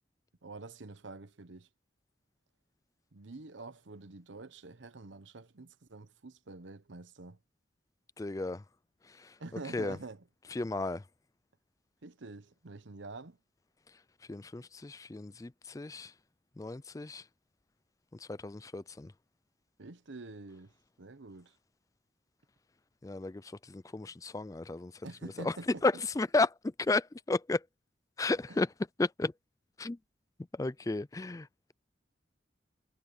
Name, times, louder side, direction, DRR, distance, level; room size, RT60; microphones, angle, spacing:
voice 1, 0.4-1.7 3.1-7.4 9.4-10.2 12.0-13.4 19.8-20.7 21.0-21.6 25.0-26.0 28.5-28.6, right 3 dB, 85° right, 1.0 m, -47 dB
voice 2, 8.2-8.6 9.1-9.3 9.7-10.0 10.5-11.0 14.3-16.1 16.6-17.2 18.1-19.1 23.0-24.9 25.4-25.5 25.8-27.6 28.2-28.7 29.0-29.3 29.8-30.0 30.5-31.7, left 3 dB, 20° left, 0.3 m, -33 dB
head